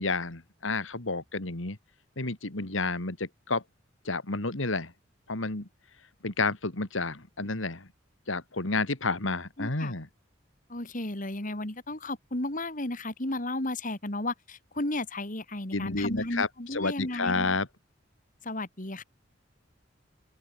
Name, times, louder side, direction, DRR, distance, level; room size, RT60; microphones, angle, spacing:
voice 1, 0.0-1.8 2.2-3.6 4.0-4.9 5.3-5.7 6.2-7.9 8.3-10.1 15.7-17.7, left 3 dB, 80° left, 2.5 m, -30 dB
voice 2, 9.6-9.9 10.7-17.5 18.4-19.0, left 2 dB, 40° left, 2.9 m, -34 dB
open air
head